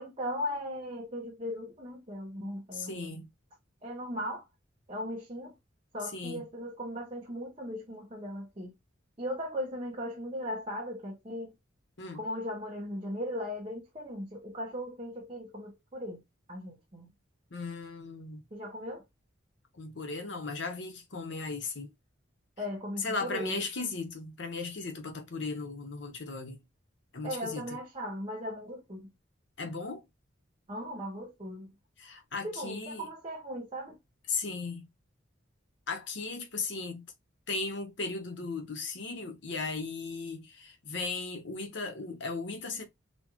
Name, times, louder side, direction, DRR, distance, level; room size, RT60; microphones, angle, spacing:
voice 1, 0.0-3.3 3.8-4.4 4.9-5.6 5.9-8.7 9.2-11.5 12.1-16.2 16.5-17.1 18.5-19.0 22.6-23.6 27.2-29.1 30.7-31.7 32.4-34.0, equal, 30° right, 0.8 m, -38 dB
voice 2, 2.7-3.3 6.1-6.4 12.0-12.2 17.5-18.4 19.7-21.9 23.0-26.6 27.1-27.6 29.6-30.0 32.0-33.1 34.3-34.8 35.9-37.0 37.5-42.8, left 4 dB, 65° left, 0.9 m, -36 dB
4.2 x 2.3 x 2.9 m
head